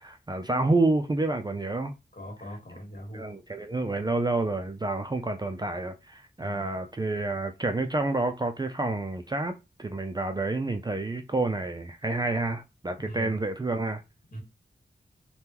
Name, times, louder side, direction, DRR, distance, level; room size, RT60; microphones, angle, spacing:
voice 1, 0.0-1.9 3.1-9.5 9.8-14.0, right 2 dB, 25° right, 0.4 m, -29 dB
voice 2, 2.1-3.2 6.4-6.7 13.0-13.4 14.3-14.4, equal, 50° left, 1.5 m, -40 dB
3.5 x 2.2 x 2.9 m
wide cardioid pair, 75°, 19 cm